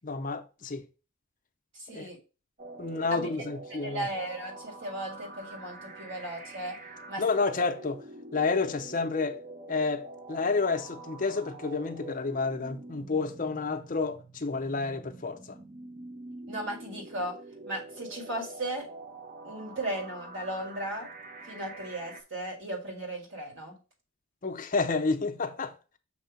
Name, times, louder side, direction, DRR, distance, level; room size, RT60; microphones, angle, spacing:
voice 1, 0.0-0.8 1.9-2.1 2.8-4.1 7.2-8.0 8.3-9.4 9.7-15.6 24.4-25.7, left 4 dB, 40° left, 0.6 m, -30 dB
voice 2, 1.7-2.2 3.1-3.3 3.7-6.8 7.1-7.2 16.5-17.4 17.6-18.9 19.4-21.1 21.4-23.8, right 1 dB, 60° right, 1.9 m, -36 dB
sound 1, 2.6-22.2, right 2 dB, 35° right, 0.7 m, -46 dB
6.5 x 2.7 x 5.2 m
head